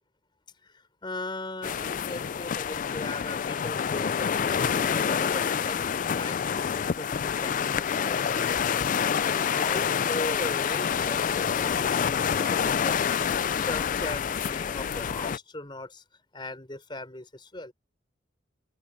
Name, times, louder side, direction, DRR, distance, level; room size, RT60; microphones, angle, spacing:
voice 1, 0.6-8.7 9.2-16.0 16.3-17.7, left 2 dB, 25° left, 4.7 m, -39 dB
sound 1, 1.6-15.4, left 7 dB, 40° left, 0.3 m, -27 dB
open air
head